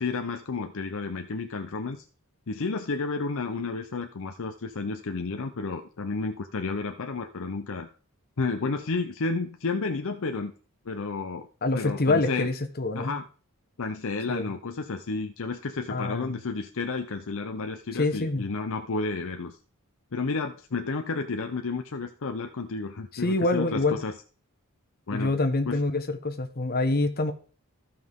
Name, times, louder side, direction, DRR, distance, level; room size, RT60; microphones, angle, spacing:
voice 1, 0.0-2.0 2.5-7.9 8.4-10.5 10.9-11.5 11.7-12.5 13.0-13.2 13.8-19.6 20.1-24.1 25.1-25.3 25.7-25.8, left 4 dB, 65° left, 6 dB, 0.7 m, -31 dB
voice 2, 11.6-13.2 14.3-14.5 15.9-16.4 17.9-18.5 23.1-24.0 25.1-27.3, left 2 dB, 45° left, 6 dB, 1.2 m, -26 dB
14.5 x 5.7 x 3.6 m, 0.38 s
head